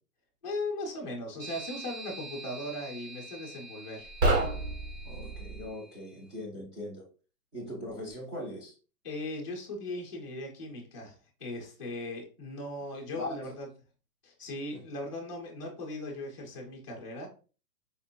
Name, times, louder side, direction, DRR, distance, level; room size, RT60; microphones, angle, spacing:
voice 1, 0.4-4.1 9.0-13.7 14.2-17.3, left 1 dB, 20° left, -6 dB, 0.4 m, -38 dB
sound 1, 1.4-6.1, right 3 dB, 80° right, 1.1 m, -46 dB
sound 2, 4.0-5.7, right 2 dB, 60° right, 1.2 m, -29 dB
voice 2, 5.0-7.1 7.5-8.7 13.1-13.4 14.7-14.8, left 1 dB, 15° right, -6 dB, 0.7 m, -40 dB
4.2 x 2.5 x 2.6 m, 0.36 s
hypercardioid pair, 165°, 47 cm